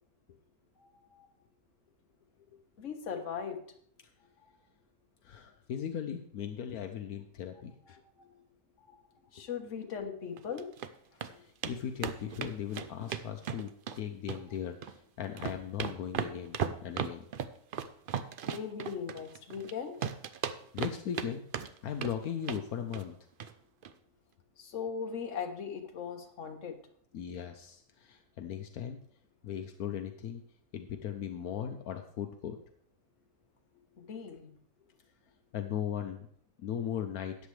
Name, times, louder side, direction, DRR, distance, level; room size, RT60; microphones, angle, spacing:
voice 1, 0.8-1.3 2.8-3.6 7.9-8.4 8.8-9.0 9.3-10.7 11.3-11.4 18.4-19.9 24.6-26.8 34.0-34.5, left 6 dB, 55° left, 4 dB, 1.5 m, -39 dB
voice 2, 5.2-7.7 11.4-17.3 20.7-21.5 21.8-23.2 27.1-29.0 29.4-30.4 30.7-32.6 35.5-36.3 36.6-37.3, left 9 dB, 80° left, 6 dB, 1.2 m, -38 dB
sound 1, 10.4-10.9 11.2-11.3 11.6-11.7 12.0-14.0 14.3-15.0 15.2-19.7 20.0-21.3 21.5-22.1 22.4-22.6 22.9-23.1 23.4-23.5 23.8-23.9, right 8 dB, 70° right, 0.5 m, -36 dB
13.0 x 9.2 x 3.3 m, 0.63 s
omnidirectional pair, 1.6 m